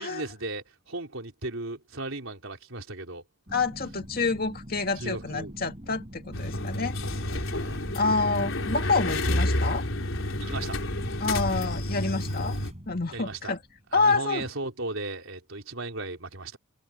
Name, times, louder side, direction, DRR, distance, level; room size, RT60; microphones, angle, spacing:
voice 1, 0.0-3.2 5.0-5.5 7.2-7.8 10.4-10.8 13.1-13.5 13.9-16.6, right 2 dB, 75° right, 3.9 m, -36 dB
voice 2, 3.5-7.0 7.3-7.4 7.9-9.8 11.2-12.6 12.9-13.6 13.9-14.5, left 3 dB, 45° left, 2.3 m, -28 dB
sound 1, 3.5-14.0 14.3-14.4, equal, 30° right, 6.2 m, -44 dB
sound 2, 6.3-12.7, left 1 dB, 80° left, 3.9 m, -29 dB
head